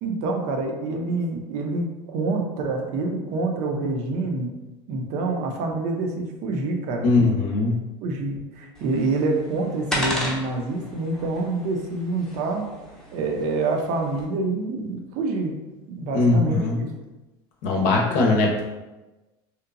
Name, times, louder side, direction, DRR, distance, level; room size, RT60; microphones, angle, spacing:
voice 1, 0.0-4.5 4.9-7.1 8.0-12.7 13.1-15.5 15.9-16.9, right 3 dB, 60° right, 2 dB, 0.5 m, -26 dB
voice 2, 7.0-7.8 16.1-16.8 17.6-18.7, left 3 dB, 65° left, 0 dB, 0.6 m, -20 dB
sound 1, 8.7-14.2, equal, 5° left, 0.6 m, -34 dB
2.8 x 2.1 x 2.5 m, 1.1 s
supercardioid pair, 95°, 14 cm